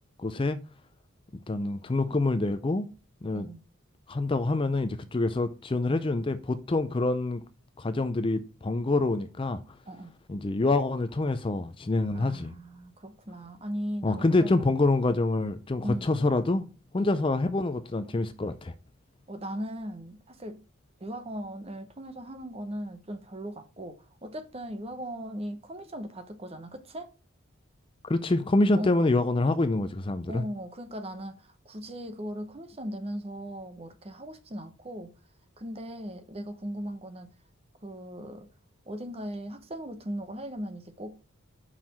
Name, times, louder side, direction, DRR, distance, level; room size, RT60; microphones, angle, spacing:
voice 1, 0.2-0.6 1.5-2.9 3.2-3.5 4.1-7.4 7.8-9.6 10.3-12.5 14.0-16.7 16.9-18.7 28.1-30.4, left 2 dB, 25° left, 0.4 m, -26 dB
voice 2, 3.3-3.6 9.9-10.2 12.1-14.7 15.8-16.2 17.0-17.2 19.3-20.6 21.0-27.1 28.8-29.1 30.3-35.1 35.6-37.3 37.8-38.5 38.9-41.2, equal, 30° right, 0.8 m, -38 dB
5.6 x 4.9 x 5.6 m
head